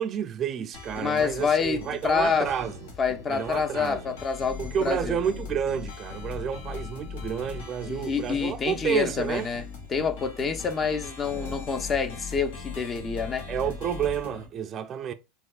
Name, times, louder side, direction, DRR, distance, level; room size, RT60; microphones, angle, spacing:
voice 1, 0.0-2.7 3.3-4.0 4.6-9.5 11.3-11.6 13.5-15.1, right 8 dB, 40° right, 0.3 m, -30 dB
sound 1, 0.7-14.5, left 5 dB, 80° left, 1.0 m, -40 dB
voice 2, 1.0-2.5 3.0-5.2 7.9-13.5, left 5 dB, 30° left, 0.5 m, -27 dB
4.3 x 2.3 x 2.4 m
hypercardioid pair, 100°, 0 cm